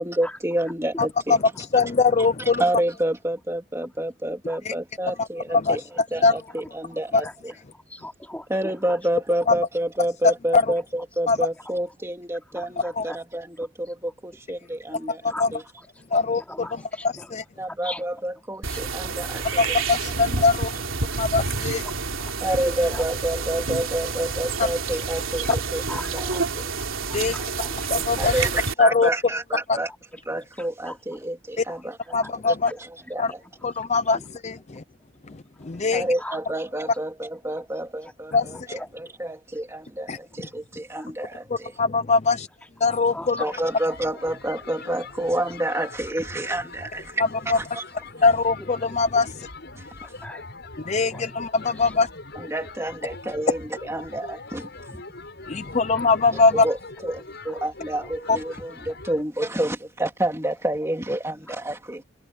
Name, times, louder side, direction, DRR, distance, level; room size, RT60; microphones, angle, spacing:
voice 1, 0.0-1.4 2.4-5.8 6.1-7.5 8.5-15.2 15.5-15.6 17.6-19.8 22.4-26.4 28.2-29.9 30.3-32.0 32.5-33.4 35.9-41.7 43.4-47.8 49.8-49.9 52.3-55.0 56.3-56.8 57.0-62.0, right 1 dB, 15° right, 2.7 m, -29 dB
voice 2, 1.7-2.6 4.7-4.8 5.2-5.8 6.2-6.3 7.1-7.2 9.5-9.6 10.2-10.6 11.3-11.4 13.0-13.1 15.1-15.5 16.1-16.4 17.3-17.4 19.6-20.7 21.2-21.8 24.6-24.7 27.1-27.3 27.9-28.5 28.8-29.1 29.7-29.8 31.6-31.7 32.1-32.7 33.2-33.3 33.6-34.2 34.4-34.8 35.6-36.0 38.3-38.5 40.1-40.2 41.8-42.5 42.8-43.4 47.5-47.6 48.2-49.5 50.9-52.1 55.5-56.7 58.3-58.4, left 4 dB, 35° left, 0.6 m, -21 dB
voice 3, 5.5-6.7 7.2-9.0 11.6-12.0 12.5-13.2 13.6-13.9 14.9-15.0 15.3-15.5 15.7-17.3 17.6-19.6 20.6-20.7 21.1-21.2 21.5-23.0 25.4-25.6 25.9-26.5 26.9-28.6 29.9-30.0 30.5-31.3 31.7-32.8 33.4-34.3 35.6-35.8 36.2-36.4 38.0-38.1 38.5-38.9 39.5-39.6 40.3-40.4 40.9-41.1 42.6-42.7 43.1-43.5 43.9-44.0 47.5-47.6 48.6-48.7 50.0-50.5 50.8-52.0 55.8-56.2 57.4-57.6 58.0-58.1 58.4-59.0 59.7-59.8 61.5-61.6, left 1 dB, 5° left, 4.6 m, -42 dB
sound 1, 18.6-28.7, right 4 dB, 70° right, 3.4 m, -29 dB
sound 2, 43.5-59.2, left 3 dB, 55° left, 7.9 m, -42 dB
head